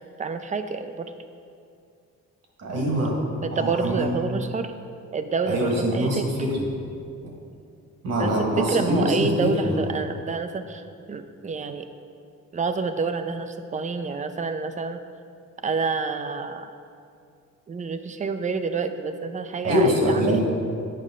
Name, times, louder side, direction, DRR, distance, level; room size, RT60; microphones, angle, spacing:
voice 1, 0.2-1.1 3.4-4.7 5.1-6.3 8.2-11.9 12.5-15.0 15.6-16.7 17.7-20.4, right 4 dB, 25° right, 9 dB, 0.5 m, -28 dB
voice 2, 2.6-3.2 3.5-4.1 5.5-6.6 8.0-9.7 19.6-20.4, equal, 55° right, -1 dB, 1.7 m, -23 dB
8.5 x 5.3 x 3.7 m, 2.4 s
cardioid pair, 90°, 30 cm